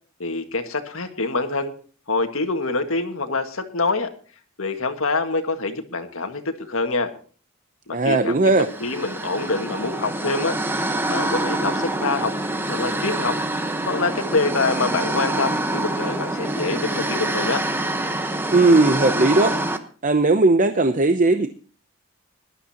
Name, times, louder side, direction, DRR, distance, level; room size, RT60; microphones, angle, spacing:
voice 1, 0.2-1.7 2.1-4.1 4.6-7.1 7.9-10.6 11.1-12.4 12.7-13.4 13.9-17.6, left 3 dB, 70° left, 6 dB, 1.8 m, -25 dB
voice 2, 7.9-8.7 18.5-19.6 20.0-21.5, right 2 dB, 40° right, 9 dB, 0.7 m, -17 dB
sound 1, 8.5-19.8, right 1 dB, 10° right, 1.1 m, -26 dB
21.0 x 12.5 x 2.9 m, 0.41 s
head